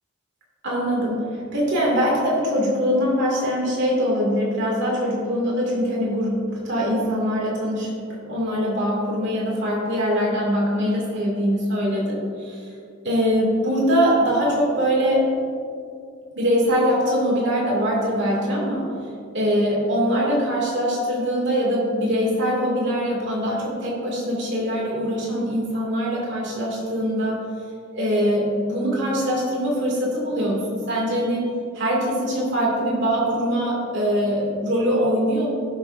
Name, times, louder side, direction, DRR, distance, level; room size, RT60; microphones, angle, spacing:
voice 1, 0.6-8.0 8.3-12.7 13.0-15.3 16.4-18.9 19.3-27.4 27.9-31.4 31.7-35.5, equal, 60° right, -4 dB, 2.3 m, -22 dB
17.5 x 6.6 x 2.6 m, 2.3 s
head